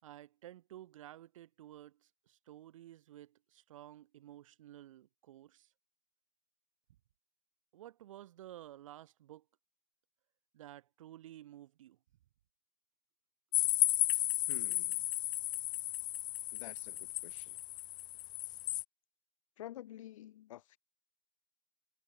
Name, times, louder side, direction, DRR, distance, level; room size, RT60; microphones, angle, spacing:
voice 1, 0.0-5.7 7.7-9.4 10.5-12.0, right 13 dB, 35° right, 5.1 m, -53 dB
sound 1, 13.5-18.8, left 16 dB, 15° left, 2.3 m, -34 dB
voice 2, 14.5-15.1 16.5-17.6 19.6-20.8, left 13 dB, 35° left, 4.8 m, -50 dB
figure-of-eight pair, 145°, 29 cm